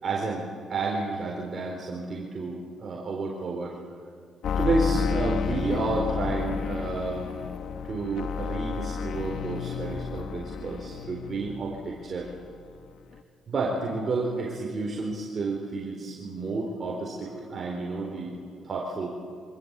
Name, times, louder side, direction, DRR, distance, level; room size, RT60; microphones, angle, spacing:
voice 1, 0.0-3.8 4.6-7.3 7.8-12.3 13.5-18.4 18.6-19.1, right 3 dB, 45° right, -2 dB, 4.3 m, -31 dB
sound 1, 4.4-11.9 12.2-12.9 13.1-13.2, left 6 dB, 70° left, 1.1 m, -31 dB
25.5 x 19.0 x 8.4 m, 2.4 s
cardioid pair, 90°, 0 cm